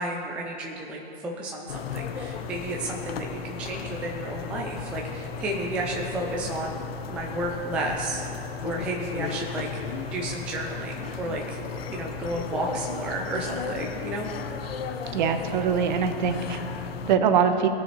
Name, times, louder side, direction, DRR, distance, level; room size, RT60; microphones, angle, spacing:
voice 1, 0.0-8.3 8.6-9.7 10.1-11.6 11.9-14.3, right 1 dB, 5° right, -1 dB, 0.3 m, -32 dB
sound 1, 1.7-17.2, left 5 dB, 70° left, 0.7 m, -35 dB
voice 2, 15.1-17.7, right 7 dB, 50° right, 8 dB, 0.9 m, -24 dB
17.5 x 6.3 x 3.1 m, 2.8 s
hypercardioid pair, 125°, 31 cm